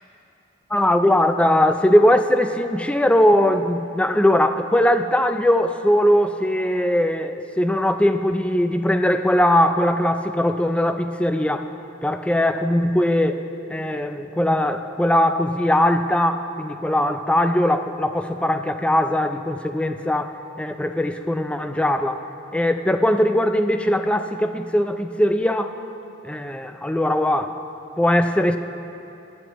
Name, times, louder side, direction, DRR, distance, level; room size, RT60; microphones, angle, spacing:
voice 1, 0.7-11.7 12.0-13.4 13.7-22.2 22.5-25.7 26.2-27.6 28.0-28.6, left 1 dB, 5° left, 7 dB, 0.3 m, -20 dB
18.5 x 11.0 x 3.0 m, 2.8 s
head